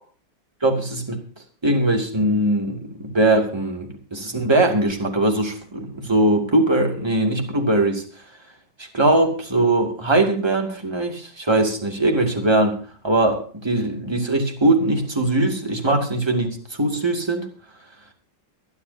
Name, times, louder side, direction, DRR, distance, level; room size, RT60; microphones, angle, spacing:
voice 1, 0.6-1.2 1.6-8.0 8.9-12.8 13.0-17.5, right 2 dB, 15° right, 3 dB, 2.3 m, -21 dB
23.5 x 12.0 x 2.7 m, 0.39 s
omnidirectional pair, 2.0 m